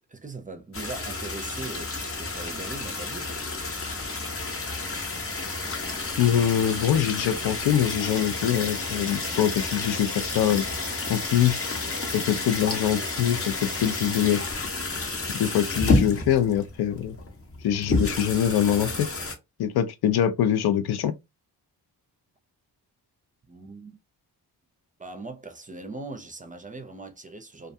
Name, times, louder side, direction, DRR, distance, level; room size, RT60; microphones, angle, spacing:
voice 1, 0.1-3.7 23.5-24.0 25.0-27.7, right 3 dB, 20° right, 0.5 m, -40 dB
sound 1, 0.7-19.3, left 3 dB, 35° left, 0.8 m, -30 dB
voice 2, 6.2-10.7 11.1-11.7 12.1-14.5 15.3-17.2 17.6-19.1 19.6-21.1, left 10 dB, 70° left, 0.5 m, -24 dB
2.4 x 2.2 x 2.6 m
cardioid pair, 60°, 41 cm